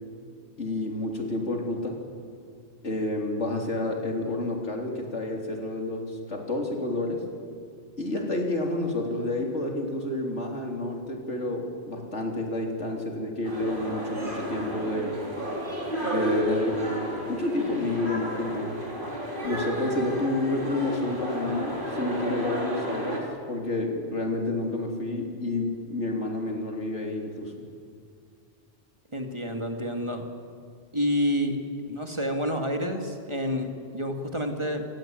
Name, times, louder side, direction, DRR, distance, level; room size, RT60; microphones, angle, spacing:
voice 1, 0.6-2.0 2.8-7.2 8.0-15.1 16.0-16.8 17.3-18.8 19.4-27.5, left 2 dB, 85° left, 2 dB, 3.9 m, -29 dB
sound 1, 13.4-23.2, equal, 50° right, 4.5 m, -32 dB
voice 2, 29.1-30.3 30.9-31.6 31.9-34.9, equal, 25° right, 4 dB, 2.3 m, -29 dB
28.5 x 18.0 x 9.1 m, 2.3 s
omnidirectional pair, 1.2 m